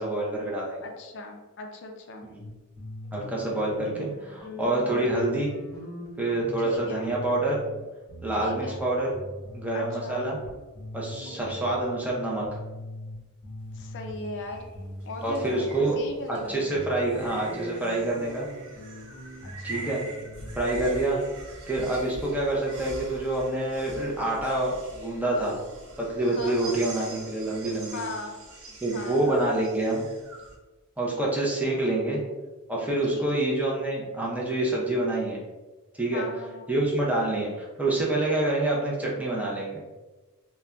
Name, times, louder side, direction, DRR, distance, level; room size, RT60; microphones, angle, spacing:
voice 1, 0.0-0.8 2.3-2.5 3.1-5.5 6.2-7.6 8.2-9.1 9.5-10.4 10.9-12.5 15.2-16.0 16.3-18.5 19.6-20.0 20.6-21.2 21.7-25.6 26.0-28.0 28.8-30.0 31.0-32.2 32.7-35.4 35.9-36.2 36.7-39.8, right 2 dB, 5° right, -4 dB, 0.5 m, -27 dB
voice 2, 0.8-2.3 4.9-5.2 6.6-7.1 8.4-8.9 9.7-10.2 11.2-11.7 13.7-14.7 15.1-16.6 19.4-20.0 26.3-26.8 27.7-28.4 28.9-29.3 31.6-32.2 33.1-33.4 36.1-36.7, left 3 dB, 55° left, 3 dB, 0.4 m, -39 dB
sound 1, 2.3-2.5 2.8-13.2 13.4-20.5, left 1 dB, 20° left, 1.2 m, -42 dB
sound 2, 13.6-30.5, right 2 dB, 65° right, 0.7 m, -43 dB
2.5 x 2.2 x 3.3 m, 1.2 s
head